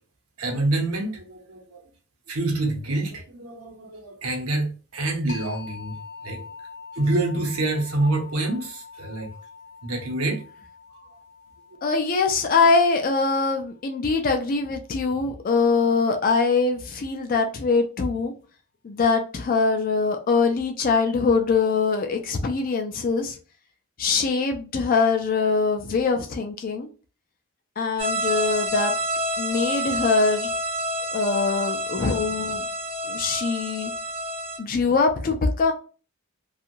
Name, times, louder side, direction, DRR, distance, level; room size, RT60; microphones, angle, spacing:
voice 1, 0.4-1.8 2.3-5.9 6.2-6.4 6.9-9.3 9.8-10.4, right 2 dB, 85° right, 0.9 m, -26 dB
sound 1, 5.3-14.7, left 4 dB, 55° left, 0.8 m, -44 dB
voice 2, 11.8-18.3 18.8-23.4 24.0-26.9 27.8-28.9 29.4-30.5 31.1-32.7 33.0-33.9 34.6-35.7, left 4 dB, 40° left, 0.3 m, -23 dB
sound 2, 28.0-34.6, equal, 25° right, 0.7 m, -28 dB
2.5 x 2.4 x 2.9 m
head